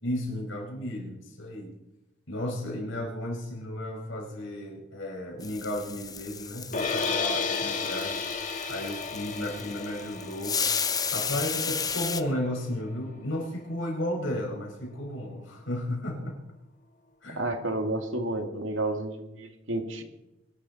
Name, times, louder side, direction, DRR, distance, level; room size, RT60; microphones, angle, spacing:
voice 1, 0.0-1.7 2.3-8.2 8.7-10.6 11.1-16.4 17.2-17.7, left 1 dB, 85° left, 0 dB, 5.2 m, -34 dB
sound 1, 5.4-12.2, left 6 dB, 20° left, 0.7 m, -33 dB
sound 2, 6.7-12.9, left 5 dB, 45° left, 1.6 m, -33 dB
voice 2, 17.3-20.0, right 2 dB, 90° right, 5 dB, 2.2 m, -31 dB
23.5 x 12.0 x 4.2 m, 0.94 s
head